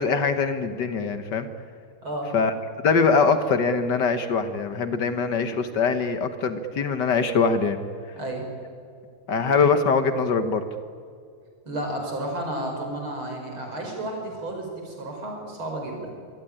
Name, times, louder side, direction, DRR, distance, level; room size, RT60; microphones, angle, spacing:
voice 1, 0.0-1.5 2.3-2.5 2.8-7.8 9.3-10.6, left 5 dB, 60° left, 10 dB, 1.6 m, -22 dB
voice 2, 11.7-16.1, right 1 dB, 75° right, 2 dB, 6.0 m, -32 dB
24.5 x 18.0 x 10.0 m, 2.3 s
omnidirectional pair, 2.3 m